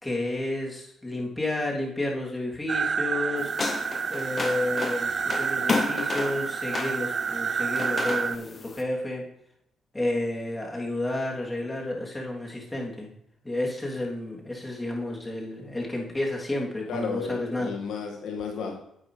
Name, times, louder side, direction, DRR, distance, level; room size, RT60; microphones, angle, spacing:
voice 1, 0.0-3.8 4.1-9.2 9.9-13.1 13.4-17.7, left 1 dB, 15° left, -2 dB, 3.4 m, -31 dB
sound 1, 2.7-8.4, right 6 dB, 50° right, 0.4 m, -29 dB
sound 2, 3.4-8.8, left 4 dB, 40° left, 1.0 m, -33 dB
voice 2, 16.9-18.8, left 5 dB, 80° left, 1 dB, 2.2 m, -33 dB
11.0 x 8.5 x 3.4 m, 0.75 s
supercardioid pair, 65°, 0 cm